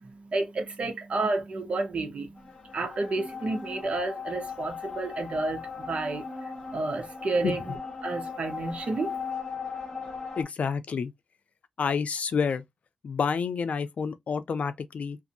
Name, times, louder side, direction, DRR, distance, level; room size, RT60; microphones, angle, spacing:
voice 1, 0.3-2.3 2.7-6.2 6.7-7.6 8.0-9.1, right 3 dB, 60° right, 0.9 m, -30 dB
sound 1, 2.4-10.4, left 5 dB, 40° left, 1.0 m, -38 dB
voice 2, 10.4-11.1 11.8-12.6 13.0-15.2, left 6 dB, 75° left, 0.4 m, -29 dB
2.6 x 2.5 x 2.5 m
wide cardioid pair, 80°, 2 cm